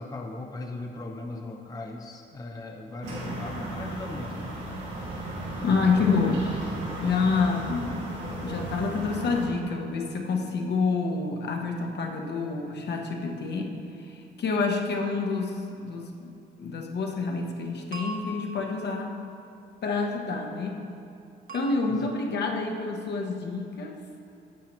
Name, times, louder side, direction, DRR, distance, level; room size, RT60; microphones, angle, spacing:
voice 1, 0.0-4.5, left 2 dB, 20° left, 2 dB, 0.6 m, -38 dB
sound 1, 3.0-9.5, right 1 dB, 90° right, 2.0 m, -35 dB
voice 2, 5.6-8.0 8.4-16.3 16.6-19.2 19.8-20.8 21.5-24.0, left 4 dB, 60° left, 2 dB, 1.0 m, -28 dB
sound 2, 17.9-19.6 21.5-22.6, right 1 dB, 45° right, 1.1 m, -42 dB
11.5 x 7.2 x 3.1 m, 2.6 s
cardioid pair, 90°, 20 cm